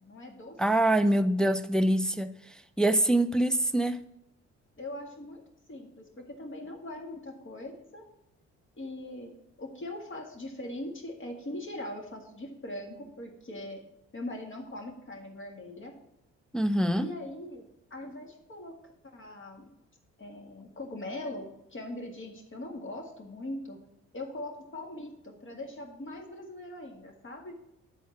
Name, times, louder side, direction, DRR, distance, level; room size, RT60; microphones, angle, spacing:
voice 1, 0.0-0.6 4.8-5.4 5.7-8.0 8.7-13.8 14.1-15.9 17.0-18.7 19.0-19.7 20.2-23.8 24.1-27.6, left 1 dB, 40° left, 1 dB, 1.9 m, -41 dB
voice 2, 0.6-4.0 16.5-17.1, right 1 dB, ahead, 9 dB, 0.4 m, -25 dB
7.5 x 4.1 x 5.9 m, 0.82 s
supercardioid pair, 55°, 32 cm